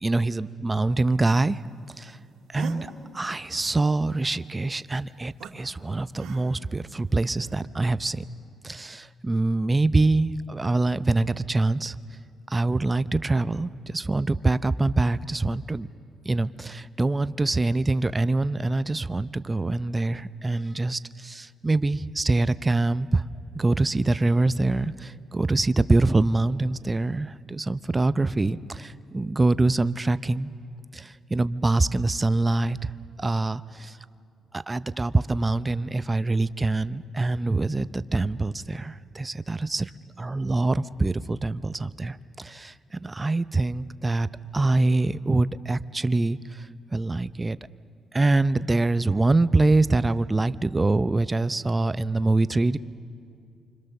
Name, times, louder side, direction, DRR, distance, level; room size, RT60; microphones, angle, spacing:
voice 1, 0.0-1.6 2.0-2.2 2.5-8.2 8.6-11.9 12.5-15.9 16.2-23.2 23.5-30.5 30.9-32.9 33.2-34.0 34.5-39.9 40.2-44.3 44.5-46.7 46.9-47.6 48.1-52.8, right 2 dB, 20° right, 14 dB, 0.6 m, -24 dB
sound 1, 2.5-2.8 5.4-5.5 6.2-6.7 7.4-7.6, right 7 dB, 80° right, 2.3 m, -39 dB
28.5 x 25.5 x 6.7 m, 2.5 s
cardioid pair, 90°, 0 cm